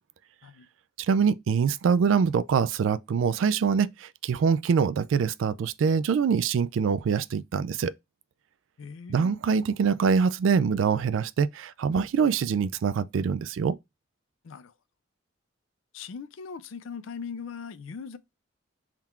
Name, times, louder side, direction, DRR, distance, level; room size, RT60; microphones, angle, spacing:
voice 1, 1.0-7.9 9.1-13.8, right 6 dB, 75° right, 0.3 m, -24 dB
voice 2, 8.8-9.3 14.4-14.7 15.9-18.2, left 6 dB, 75° left, 0.4 m, -40 dB
3.7 x 2.4 x 4.3 m
head